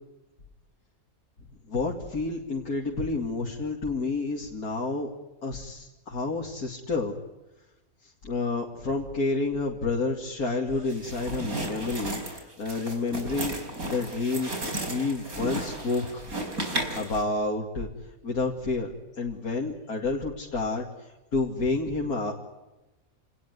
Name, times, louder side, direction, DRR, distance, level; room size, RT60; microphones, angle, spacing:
voice 1, 1.7-5.1 5.4-7.2 8.0-13.5 13.9-14.5 14.8-16.3 17.0-17.9 18.2-22.4, left 3 dB, 85° left, -1 dB, 3.1 m, -29 dB
sound 1, 10.9-17.2, right 1 dB, 75° right, 5.0 m, -34 dB
29.0 x 19.5 x 9.7 m, 1.1 s
omnidirectional pair, 1.5 m